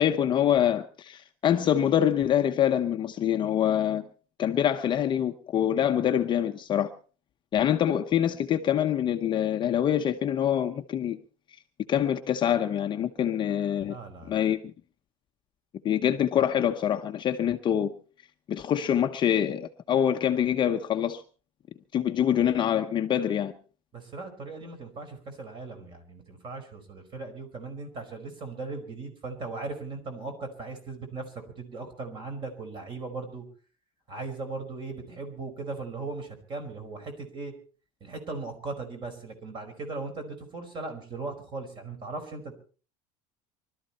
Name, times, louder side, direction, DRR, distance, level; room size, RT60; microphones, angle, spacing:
voice 1, 0.0-4.1 4.4-6.9 7.5-11.2 11.9-14.0 14.3-14.7 15.8-17.9 18.5-21.2 21.9-23.5, left 10 dB, 30° left, 0.9 m, -25 dB
voice 2, 13.8-14.4 23.9-33.4 34.1-37.5 38.0-42.5, right 3 dB, 30° right, 4.8 m, -38 dB
24.0 x 13.0 x 4.2 m
cardioid pair, 160°, 17 cm